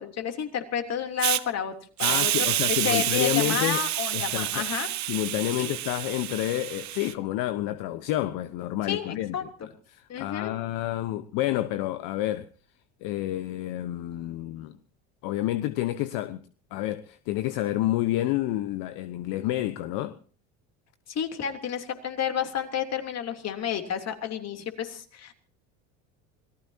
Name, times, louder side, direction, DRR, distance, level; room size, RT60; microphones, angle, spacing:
voice 1, 0.0-1.7 2.0-2.5 2.8-4.9 5.6-5.7 8.8-9.4 10.1-10.5 21.1-25.3, left 8 dB, 45° left, 3.2 m, -31 dB
Hiss, 1.2-1.4 2.0-7.1, right 14 dB, 50° right, 1.2 m, -28 dB
voice 2, 2.0-3.8 4.1-4.7 5.1-9.3 9.9-12.5 13.0-14.8 15.2-16.4 16.7-20.2, left 15 dB, 65° left, 1.1 m, -29 dB
27.0 x 18.0 x 2.8 m
supercardioid pair, 85°, 35 cm